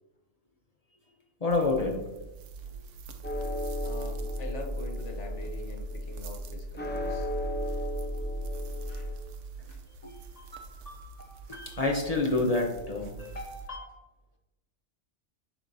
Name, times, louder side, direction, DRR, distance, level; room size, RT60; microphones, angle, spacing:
voice 1, 1.4-2.0 10.0-13.9, left 3 dB, 35° left, 0 dB, 0.8 m, -30 dB
sound 1, 1.5-13.7, right 5 dB, 85° right, 1.0 m, -45 dB
sound 2, 3.2-9.2, left 1 dB, 15° left, 0.4 m, -34 dB
voice 2, 3.8-7.3 8.6-9.1 9.7-9.8, left 2 dB, 75° left, 3 dB, 1.2 m, -44 dB
7.7 x 5.4 x 2.6 m, 1.0 s
omnidirectional pair, 1.2 m